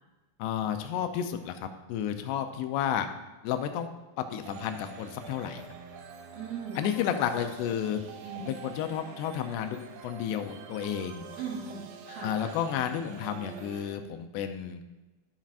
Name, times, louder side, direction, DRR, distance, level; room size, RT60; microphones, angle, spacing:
voice 1, 0.4-3.1 3.4-3.9 4.3-5.6 6.8-8.0 8.4-11.3 12.2-14.8, left 9 dB, 85° left, 7 dB, 2.7 m, -32 dB
sound 1, 4.4-13.9, right 6 dB, 80° right, 2.1 m, -46 dB
voice 2, 6.3-6.9 8.2-8.6 11.4-13.0, right 5 dB, 50° right, -6 dB, 2.0 m, -40 dB
13.0 x 7.3 x 2.5 m, 1.1 s
omnidirectional pair, 4.8 m